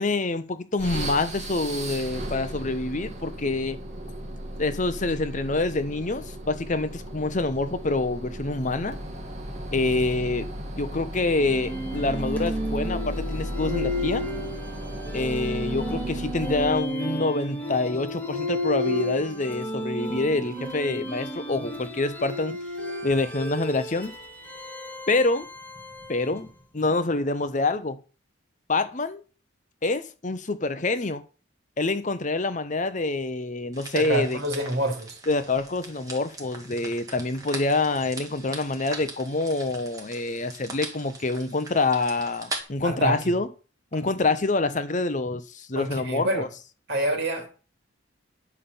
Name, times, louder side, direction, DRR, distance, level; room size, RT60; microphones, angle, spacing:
voice 1, 0.0-3.8 4.6-9.0 9.7-10.5 10.8-14.3 15.1-22.6 23.0-24.1 25.1-25.5 26.1-26.5 26.7-28.0 28.7-29.2 29.8-31.2 31.8-34.4 35.3-43.5 43.9-46.5, left 3 dB, 35° left, 0.8 m, -26 dB
sound 1, 0.8-16.9, right 1 dB, 35° right, 1.8 m, -35 dB
sound 2, 11.4-26.5, left 1 dB, 10° left, 2.3 m, -32 dB
sound 3, 33.7-42.6, right 2 dB, 15° right, 2.0 m, -40 dB
voice 2, 33.9-35.2 42.8-43.4 43.9-44.0 45.7-46.5 46.9-47.5, right 1 dB, 55° right, 2.8 m, -27 dB
11.0 x 5.5 x 7.0 m
head